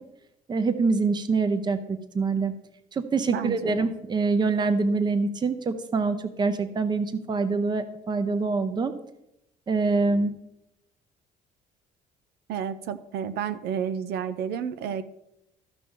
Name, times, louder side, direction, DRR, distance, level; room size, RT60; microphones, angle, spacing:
voice 1, 0.5-2.5 2.9-8.9 9.7-10.3, right 4 dB, 25° right, 11 dB, 0.7 m, -25 dB
voice 2, 3.3-3.9 12.5-15.0, right 8 dB, 75° right, 12 dB, 0.6 m, -31 dB
14.0 x 5.8 x 3.7 m, 0.85 s
cardioid pair, 110°, 17 cm